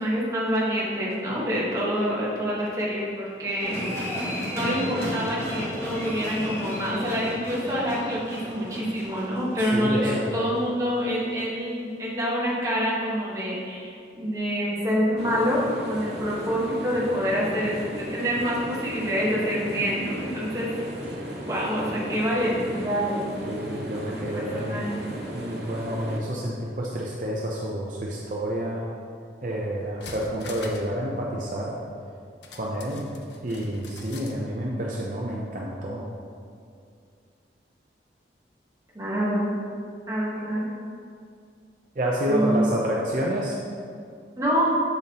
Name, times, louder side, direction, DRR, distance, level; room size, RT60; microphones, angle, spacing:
voice 1, 0.0-20.8 21.4-23.3 24.2-25.1 38.9-39.5 40.1-40.7 42.3-42.7 44.4-44.7, equal, 20° right, -6 dB, 1.3 m, -27 dB
sound 1, 3.6-10.9 11.2-11.3, equal, 15° left, 1.0 m, -34 dB
voice 2, 9.7-10.5 23.5-24.8 25.3-28.9 29.4-31.8 32.5-33.1 33.4-36.0 42.0-43.5, right 1 dB, 45° right, -4 dB, 0.6 m, -29 dB
sound 2, 15.2-26.2, right 1 dB, 75° right, 1.1 m, -36 dB
sound 3, 29.4-29.5 29.8-31.0 31.2-31.3 32.4-34.4 34.7-34.8, left 3 dB, 80° left, 0.7 m, -43 dB
6.9 x 6.9 x 2.9 m, 2.3 s
head